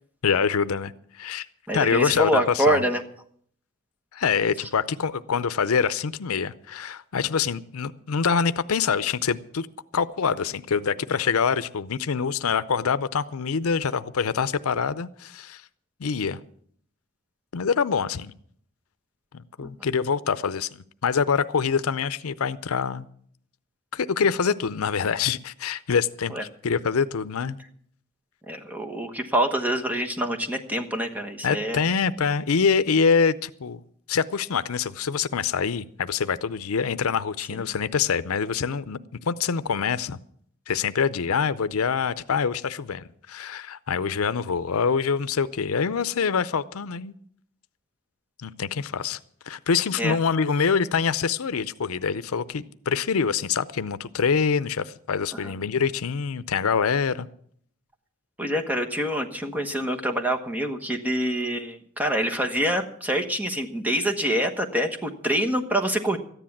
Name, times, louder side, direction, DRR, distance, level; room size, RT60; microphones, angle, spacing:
voice 1, 0.2-1.5 1.7-2.8 4.1-9.7 9.9-15.6 16.0-16.4 17.5-18.3 19.3-23.1 23.9-27.6 31.4-33.8 34.1-39.0 39.3-40.2 40.7-47.1 48.4-49.2 49.5-57.3, left 6 dB, 85° left, 14 dB, 0.6 m, -25 dB
voice 2, 1.7-3.0 19.6-19.7 26.3-26.4 28.5-31.9 50.0-50.2 55.4-55.5 58.4-66.2, right 1 dB, 10° right, 4 dB, 1.2 m, -26 dB
14.0 x 10.0 x 7.2 m, 0.62 s
head